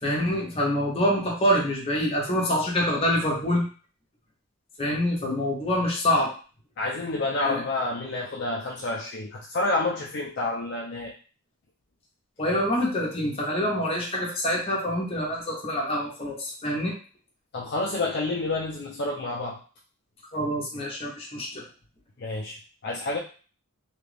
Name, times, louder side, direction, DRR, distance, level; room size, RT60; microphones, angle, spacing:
voice 1, 0.0-3.7 4.8-6.3 7.4-7.6 12.4-16.9 20.3-21.6, equal, 30° left, -3 dB, 0.9 m, -26 dB
voice 2, 6.8-11.1 17.5-19.6 22.2-22.6 22.8-23.2, left 2 dB, 50° left, -4 dB, 0.5 m, -29 dB
2.9 x 2.4 x 3.3 m, 0.38 s
head